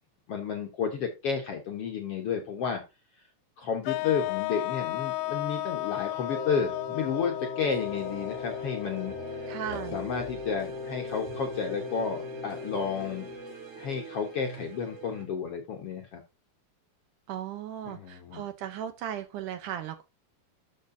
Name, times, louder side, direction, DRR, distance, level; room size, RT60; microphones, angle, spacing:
voice 1, 0.3-2.8 3.6-9.1 9.4-9.5 9.9-13.3 13.8-16.2 17.8-18.4, left 6 dB, 65° left, 3 dB, 1.5 m, -32 dB
sound 1, 3.9-9.9, left 18 dB, 85° left, 2.4 m, -34 dB
Wind instrument woodwind instrument, 6.2-13.6, left 4 dB, 5° right, 4.1 m, -39 dB
sound 2, 7.6-15.3, right 5 dB, 55° right, 3.8 m, -44 dB
voice 2, 9.5-10.0 17.3-20.0, right 10 dB, 75° right, 9 dB, 2.0 m, -36 dB
12.5 x 5.6 x 2.6 m, 0.26 s
omnidirectional pair, 4.1 m